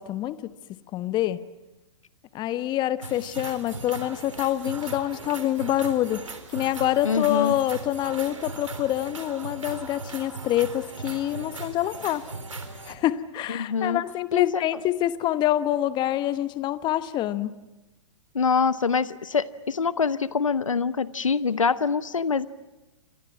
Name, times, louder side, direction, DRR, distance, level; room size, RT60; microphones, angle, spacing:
voice 1, 0.0-1.4 2.3-12.2 12.8-17.6, left 13 dB, 25° left, 14 dB, 1.1 m, -26 dB
sound 1, 3.0-12.9, right 3 dB, 85° right, 3.7 m, -39 dB
voice 2, 7.0-7.5 13.6-14.0 14.3-14.6 18.3-22.5, left 5 dB, 85° left, 16 dB, 0.9 m, -25 dB
30.0 x 26.0 x 6.0 m, 1.1 s
figure-of-eight pair, 110°, 16 cm